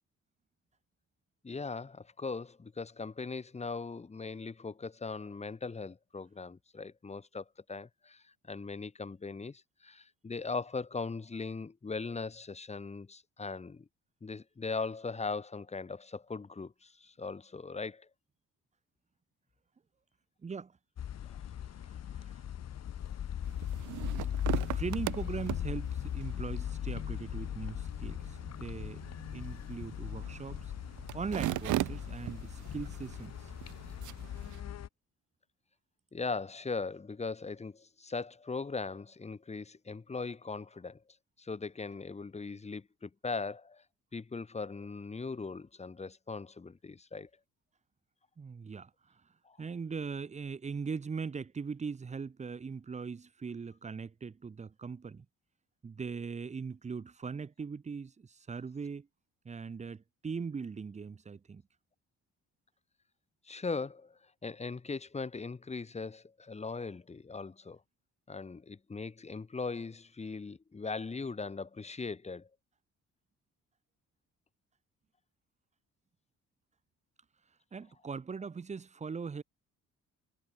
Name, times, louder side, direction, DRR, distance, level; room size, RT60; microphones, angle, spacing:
voice 1, 1.4-13.9 14.2-18.1 36.1-41.0 41.4-43.8 44.1-47.3 49.4-49.6 63.5-67.8 68.3-72.5, left 4 dB, 20° left, 1.2 m, -39 dB
voice 2, 20.4-20.8 21.9-22.4 24.7-30.7 31.1-33.3 48.4-49.2 49.6-55.3 55.8-59.1 59.4-61.6 77.7-79.4, right 5 dB, 25° right, 0.7 m, -40 dB
sound 1, 21.0-34.9, left 10 dB, 60° left, 1.9 m, -39 dB
sound 2, 23.4-34.6, right 15 dB, 75° right, 0.9 m, -40 dB
cardioid pair, 90°, 30 cm